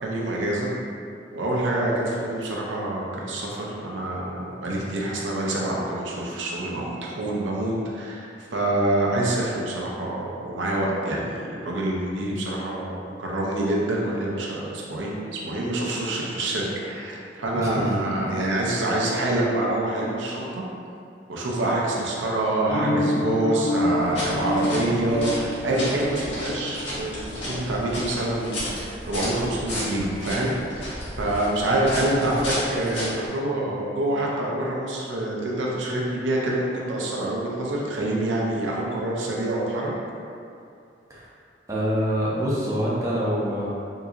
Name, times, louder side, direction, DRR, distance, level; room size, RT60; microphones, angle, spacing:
voice 1, 0.0-0.7 1.3-20.6 21.3-30.9 31.2-39.9, right 1 dB, 90° right, -3 dB, 0.6 m, -26 dB
voice 2, 17.5-18.0 41.1-41.3 41.7-43.7, equal, 15° right, -7 dB, 0.5 m, -25 dB
sound 1, 22.7-27.4, left 1 dB, 25° left, 0.7 m, -28 dB
sound 2, 24.0-33.3, equal, 85° left, 1.2 m, -33 dB
3.6 x 2.9 x 2.4 m, 2.4 s
head